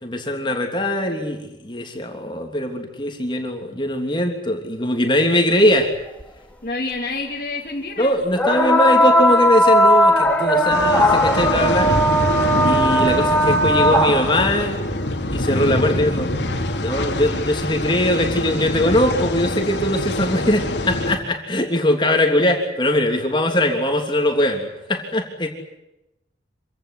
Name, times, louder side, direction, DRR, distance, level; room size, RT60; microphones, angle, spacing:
voice 1, 0.0-5.9 8.0-11.9 12.6-14.7 15.3-16.3 16.8-25.5, left 1 dB, 25° left, 3 dB, 3.2 m, -21 dB
sound 1, 6.2-6.3 8.3-14.5 16.0-16.1 16.9-17.0, equal, 10° left, 2.4 m, -17 dB
voice 2, 6.6-8.2 9.0-9.1, left 3 dB, 45° left, -2 dB, 2.8 m, -28 dB
sound 2, 10.7-21.2, left 1 dB, 80° left, 3.0 m, -24 dB
26.5 x 17.0 x 10.0 m, 0.92 s
head